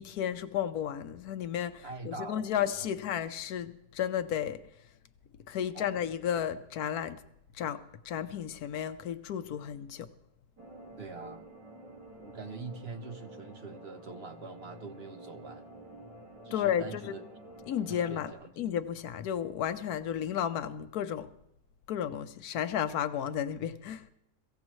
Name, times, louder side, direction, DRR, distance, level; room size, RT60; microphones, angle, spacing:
voice 1, 0.0-4.6 5.5-7.2 7.6-10.1 16.5-17.2 17.7-18.3 18.6-21.3 21.9-24.0, left 9 dB, 70° left, 1.2 m, -33 dB
voice 2, 1.8-2.5 2.8-2.9 5.7-5.9 11.0-11.5 12.2-15.7 16.4-17.2 17.9-18.5, right 4 dB, 50° right, 0.9 m, -44 dB
sound 1, 10.6-18.3, right 1 dB, 85° right, 2.8 m, -49 dB
23.0 x 16.0 x 3.1 m
omnidirectional pair, 1.8 m